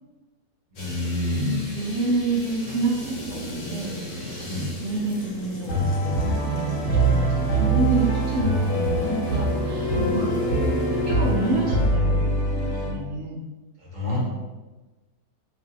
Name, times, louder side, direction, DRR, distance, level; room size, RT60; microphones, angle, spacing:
voice 1, 0.7-1.6 4.4-4.7 6.2-6.4 6.8-7.0 9.9-10.2 12.9-13.1 13.8-14.2, left 1 dB, 40° right, -6 dB, 0.7 m, -29 dB
sound 1, 0.8-12.0, equal, 85° left, 1.4 m, -37 dB
voice 2, 1.7-4.5 4.8-10.4 10.9-13.5, right 3 dB, 75° right, -3 dB, 0.7 m, -28 dB
sound 2, 5.7-12.9, right 1 dB, 55° left, 1.1 m, -23 dB
3.2 x 2.5 x 3.8 m, 1.2 s
omnidirectional pair, 1.8 m